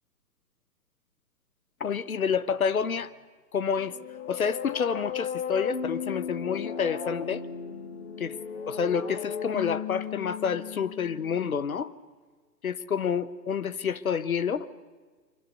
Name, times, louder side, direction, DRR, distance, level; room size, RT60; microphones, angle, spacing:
voice 1, 1.8-3.1 3.5-4.0 4.3-7.4 8.2-8.4 8.7-11.9 12.6-14.7, left 6 dB, 55° left, 14 dB, 1.3 m, -28 dB
sound 1, 3.8-11.5, left 7 dB, 40° left, 2.5 m, -36 dB
26.5 x 24.5 x 6.6 m, 1.4 s
figure-of-eight pair, 130°, 50 cm